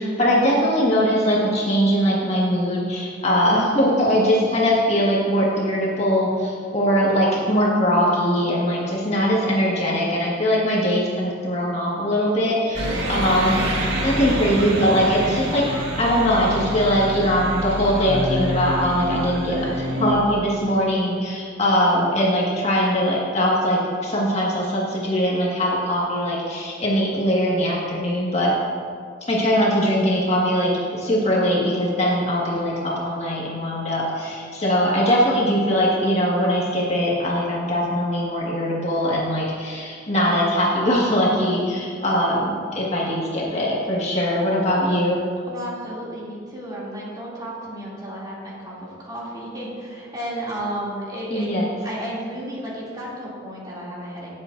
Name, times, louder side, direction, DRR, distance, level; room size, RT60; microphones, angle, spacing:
voice 1, 0.0-15.6 16.0-28.5 29.3-45.2 51.3-51.7, equal, 35° left, -5 dB, 1.8 m, -21 dB
sound 1, 12.7-20.1, equal, 65° right, 1.8 m, -27 dB
voice 2, 45.4-51.5 51.8-54.3, right 1 dB, 20° right, -7 dB, 2.8 m, -33 dB
18.0 x 7.6 x 2.6 m, 2.2 s
head